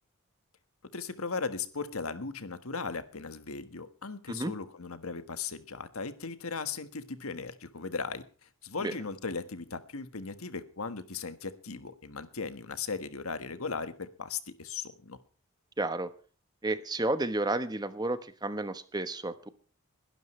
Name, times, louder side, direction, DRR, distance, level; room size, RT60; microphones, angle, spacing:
voice 1, 0.9-15.2, left 4 dB, 80° left, 11 dB, 1.5 m, -37 dB
voice 2, 15.8-16.1 16.6-19.5, right 2 dB, 20° right, 12 dB, 1.0 m, -31 dB
21.0 x 12.0 x 3.2 m, 0.39 s
head